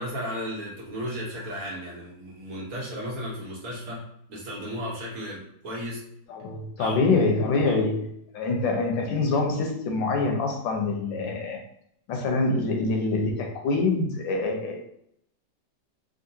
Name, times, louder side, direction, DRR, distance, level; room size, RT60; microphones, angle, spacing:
voice 1, 0.0-6.1 6.8-7.0 7.7-7.8, equal, 55° right, -4 dB, 1.3 m, -34 dB
voice 2, 6.3-11.6 12.1-14.9, left 3 dB, 90° left, 2 dB, 1.4 m, -25 dB
3.7 x 2.5 x 2.7 m, 0.73 s
omnidirectional pair, 2.0 m